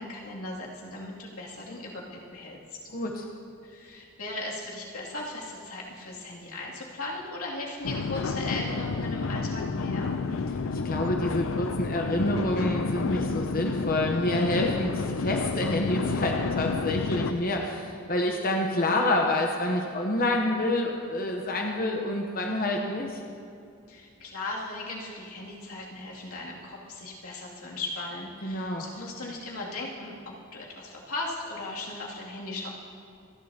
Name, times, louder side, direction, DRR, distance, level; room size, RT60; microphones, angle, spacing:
voice 1, 0.0-2.6 3.6-10.2 23.9-32.7, left 2 dB, 90° left, -4 dB, 2.6 m, -37 dB
voice 2, 2.9-3.3 10.7-23.2 28.4-28.8, left 1 dB, 40° left, 1 dB, 0.9 m, -28 dB
sound 1, 7.8-17.3, left 4 dB, 70° left, 0.5 m, -30 dB
27.5 x 11.0 x 2.9 m, 2.5 s
head